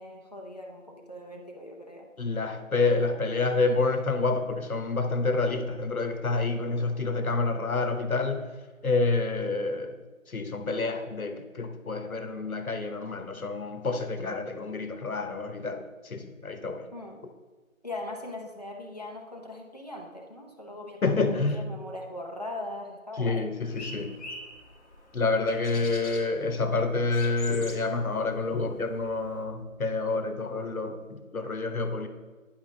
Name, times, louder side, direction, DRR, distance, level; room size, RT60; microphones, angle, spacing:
voice 1, 0.0-2.1 16.9-17.2 17.8-23.5, left 1 dB, 30° left, 0 dB, 0.7 m, -40 dB
voice 2, 2.2-8.5 8.8-10.0 10.3-16.9 21.0-21.6 23.2-24.1 25.1-32.1, left 3 dB, 85° left, 8 dB, 1.0 m, -28 dB
sound 1, 23.7-29.4, left 2 dB, 55° left, 1.3 m, -46 dB
10.5 x 4.9 x 3.8 m, 1.4 s
figure-of-eight pair, 170°, 42 cm